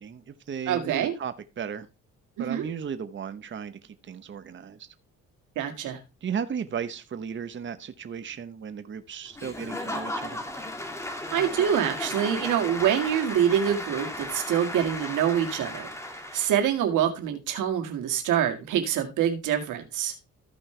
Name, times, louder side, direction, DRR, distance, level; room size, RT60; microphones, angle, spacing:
voice 1, 0.0-1.9 2.4-4.9 6.2-10.4, right 7 dB, 40° right, 10 dB, 0.9 m, -35 dB
voice 2, 0.7-1.1 2.4-2.7 5.6-6.0 11.1-15.9 16.3-20.1, right 9 dB, 85° right, 5 dB, 1.9 m, -25 dB
Applause / Crowd, 9.4-16.7, left 1 dB, 10° left, 2.0 m, -35 dB
14.5 x 5.4 x 3.3 m, 0.28 s
cardioid pair, 90°, 30 cm